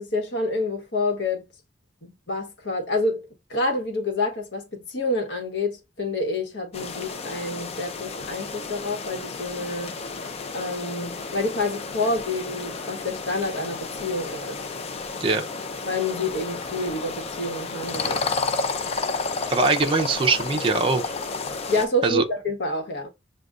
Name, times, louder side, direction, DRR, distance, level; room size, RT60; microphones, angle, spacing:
voice 1, 0.0-1.4 2.0-3.2 3.5-10.0 10.5-14.6 15.8-18.2 21.7-23.1, left 2 dB, 70° left, 1.1 m, -28 dB
sound 1, 6.7-21.9, left 4 dB, 35° left, 0.4 m, -32 dB
voice 2, 19.5-21.1 22.0-22.2, right 3 dB, 30° right, 0.5 m, -22 dB
6.3 x 2.2 x 2.4 m
head